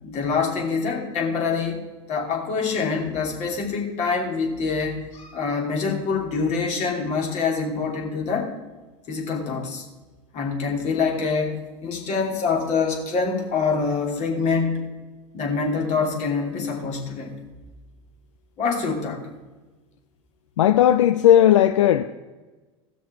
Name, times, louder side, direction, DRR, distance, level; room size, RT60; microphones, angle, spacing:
voice 1, 0.0-1.8 2.1-8.5 9.1-9.8 10.3-14.8 15.3-17.3 18.6-19.2, left 5 dB, 50° left, 0 dB, 3.0 m, -25 dB
voice 2, 20.6-22.0, left 11 dB, 85° left, 10 dB, 0.5 m, -16 dB
16.5 x 6.3 x 4.5 m, 1.2 s
hypercardioid pair, 90°, 15 cm